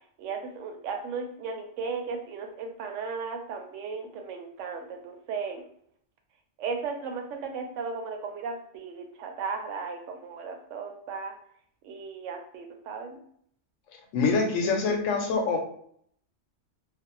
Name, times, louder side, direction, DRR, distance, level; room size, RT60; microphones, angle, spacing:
voice 1, 0.2-5.7 6.6-11.3 11.8-13.2, right 5 dB, 80° right, 4 dB, 0.9 m, -36 dB
voice 2, 14.1-15.6, left 4 dB, 85° left, 2 dB, 1.0 m, -25 dB
2.4 x 2.0 x 2.8 m, 0.65 s
omnidirectional pair, 1.3 m